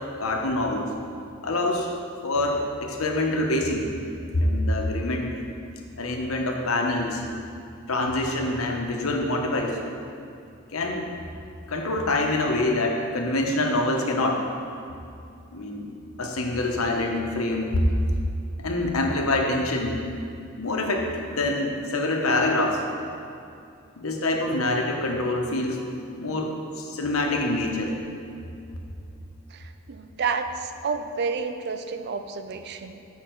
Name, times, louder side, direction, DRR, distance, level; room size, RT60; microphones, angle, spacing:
voice 1, 0.2-0.9 1.4-2.0 2.2-3.9 4.3-5.4 6.0-7.2 7.9-9.8 10.7-11.1 11.7-14.5 15.5-17.9 18.6-20.0 20.6-22.8 24.0-25.8 26.1-27.9, left 2 dB, 85° left, 2 dB, 1.0 m, -25 dB
voice 2, 29.5-33.0, right 5 dB, 50° right, 8 dB, 0.4 m, -30 dB
8.4 x 5.6 x 4.5 m, 2.5 s
head